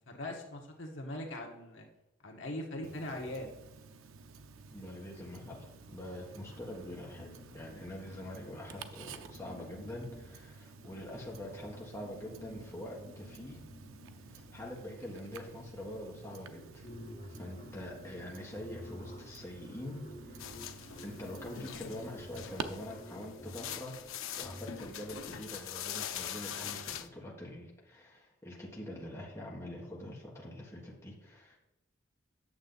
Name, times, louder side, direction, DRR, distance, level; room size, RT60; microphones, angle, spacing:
voice 1, 0.1-1.9 2.2-3.5, left 1 dB, 70° left, 1 dB, 1.4 m, -41 dB
Tick-tock, 2.8-22.6, right 5 dB, 90° right, 0.6 m, -51 dB
voice 2, 4.7-13.6 14.3-16.9 17.3-20.5 21.0-24.0 24.4-31.6, left 1 dB, 15° left, -3 dB, 1.5 m, -45 dB
sound 1, 7.0-8.8 9.3-15.0 15.9-16.0 16.3-25.1, left 1 dB, 45° left, 2.3 m, -51 dB
sound 2, 20.4-27.1, left 9 dB, 90° left, 0.6 m, -43 dB
9.1 x 6.9 x 4.0 m, 0.91 s
head